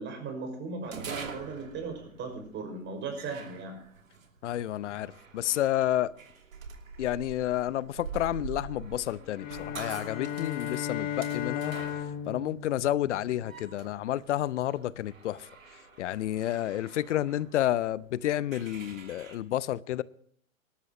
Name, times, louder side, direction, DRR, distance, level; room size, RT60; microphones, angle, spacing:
voice 1, 0.0-3.8, right 4 dB, 30° right, 5.7 m, -37 dB
sound 1, 0.8-19.4, right 5 dB, 80° right, 2.9 m, -46 dB
voice 2, 4.4-6.1 7.0-11.8 12.3-15.5 16.0-20.0, left 13 dB, 60° left, 0.7 m, -30 dB
sound 2, 9.4-13.8, left 10 dB, 20° left, 1.1 m, -36 dB
24.5 x 12.5 x 3.0 m
figure-of-eight pair, 105°, 40 cm